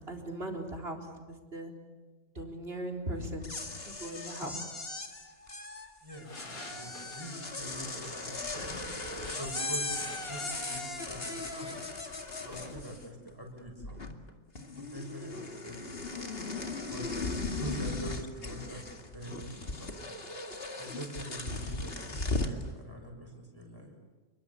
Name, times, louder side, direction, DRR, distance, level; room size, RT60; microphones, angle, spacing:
voice 1, 0.0-1.7 2.3-3.4 3.9-4.5 17.6-17.7, right 1 dB, 35° right, 2 dB, 4.3 m, -39 dB
sound 1, 3.3-13.3 13.6-14.3 14.6-22.6, left 3 dB, 35° left, 2.5 m, -38 dB
voice 2, 6.0-8.8 9.4-11.7 12.4-14.0 14.9-16.0 16.9-17.1 17.4-18.8 19.1-20.1 20.8-23.9, right 1 dB, 15° right, 1 dB, 7.0 m, -44 dB
sound 2, 6.2-12.8, left 2 dB, 80° left, 5.4 m, -51 dB
29.5 x 22.5 x 8.7 m, 1.3 s
omnidirectional pair, 1.7 m